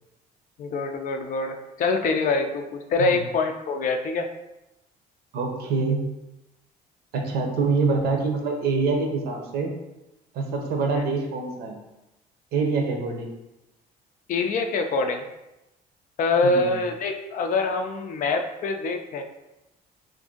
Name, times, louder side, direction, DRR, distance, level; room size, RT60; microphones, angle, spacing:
voice 1, 0.6-4.3 14.3-15.2 16.2-19.2, left 3 dB, 50° left, 5 dB, 0.4 m, -25 dB
voice 2, 5.3-6.0 7.1-9.8 10.3-11.8 12.5-13.3 16.4-16.8, right 4 dB, 65° right, 2 dB, 0.7 m, -25 dB
2.6 x 2.5 x 3.7 m, 0.94 s
cardioid pair, 110°, 17 cm